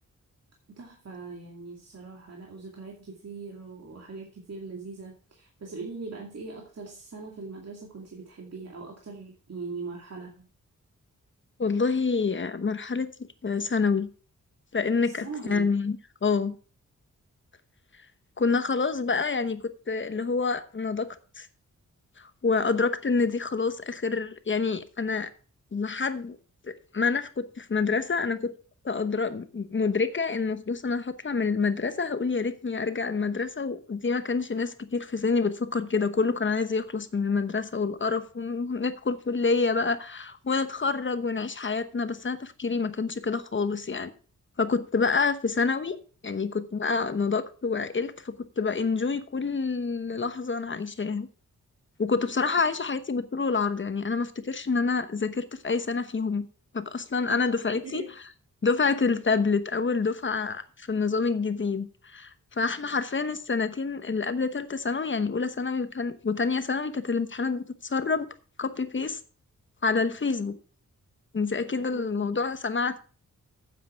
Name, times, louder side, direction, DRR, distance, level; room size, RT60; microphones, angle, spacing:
voice 1, 0.7-10.5 15.0-15.7 57.3-57.4 57.8-58.2 71.9-72.3, right 4 dB, 55° right, 2.3 m, -41 dB
voice 2, 11.6-13.1 13.4-14.1 14.7-16.6 18.4-21.5 22.2-25.3 25.7-26.4 26.6-28.5 28.8-44.1 44.6-46.0 46.2-51.3 52.0-56.5 56.7-58.0 58.6-68.3 68.6-69.2 69.8-70.6 71.3-73.0, left 4 dB, 40° left, 1.1 m, -27 dB
9.4 x 7.6 x 5.8 m
wide cardioid pair, 85°, 30 cm